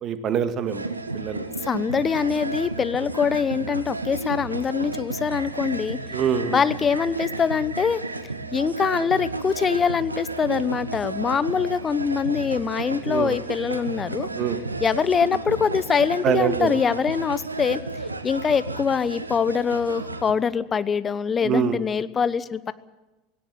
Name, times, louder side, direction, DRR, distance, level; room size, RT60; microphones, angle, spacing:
voice 1, 0.0-1.5 6.1-6.6 13.1-13.4 14.4-14.6 16.2-16.7 21.4-21.8, right 8 dB, 40° right, 10 dB, 1.9 m, -25 dB
sound 1, 0.7-20.3, right 3 dB, 90° right, 1.2 m, -32 dB
voice 2, 1.6-6.0 6.5-8.0 8.5-14.3 14.8-17.8 18.2-22.7, left 6 dB, 25° left, 15 dB, 1.0 m, -24 dB
17.5 x 17.5 x 9.9 m, 1.1 s
figure-of-eight pair, 75°, 0 cm